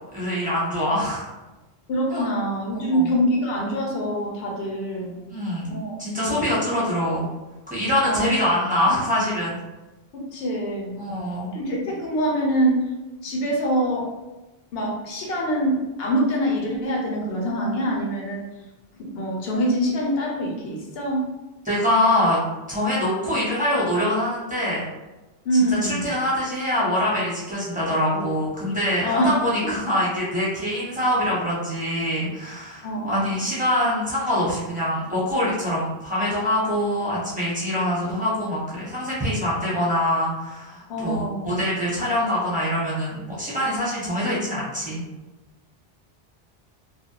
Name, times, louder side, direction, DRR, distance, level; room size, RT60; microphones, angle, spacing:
voice 1, 0.1-1.3 2.1-2.2 2.7-3.1 5.3-5.7 6.0-7.3 7.7-9.6 11.0-11.5 21.6-22.4 22.7-24.8 25.5-45.0, left 1 dB, 10° right, -9 dB, 0.8 m, -24 dB
voice 2, 1.9-5.1 5.7-5.9 6.3-6.4 8.0-8.3 10.1-11.0 11.5-12.9 13.2-14.1 14.7-18.4 19.0-21.2 25.4-26.1 29.0-29.3 29.6-29.7 32.8-33.5 40.9-41.5, equal, 75° left, -2 dB, 0.9 m, -24 dB
2.4 x 2.1 x 2.8 m, 1.1 s
omnidirectional pair, 1.0 m